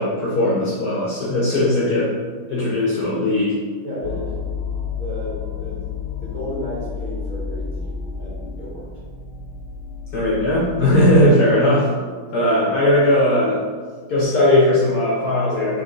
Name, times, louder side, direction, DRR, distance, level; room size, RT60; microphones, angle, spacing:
voice 1, 0.0-2.1 2.5-3.6 10.1-11.9 12.3-13.6 14.1-15.8, left 1 dB, 60° left, -6 dB, 1.1 m, -18 dB
voice 2, 3.8-4.3 5.0-8.9, equal, 70° right, -7 dB, 1.9 m, -33 dB
sound 1, 4.0-11.3, left 6 dB, 90° left, 1.4 m, -31 dB
4.1 x 3.2 x 3.8 m, 1.5 s
omnidirectional pair, 2.3 m